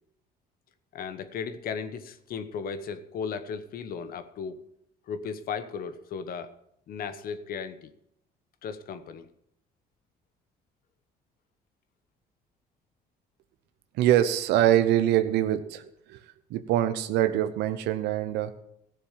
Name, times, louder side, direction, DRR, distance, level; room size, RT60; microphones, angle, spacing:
voice 1, 0.9-4.6 5.1-6.5 6.9-7.9 8.6-9.3, left 6 dB, 60° left, 11 dB, 1.1 m, -36 dB
voice 2, 14.0-15.8 16.1-16.2 16.5-18.6, right 12 dB, 85° right, 10 dB, 0.8 m, -24 dB
14.5 x 7.1 x 7.3 m, 0.75 s
cardioid pair, 110°, 17 cm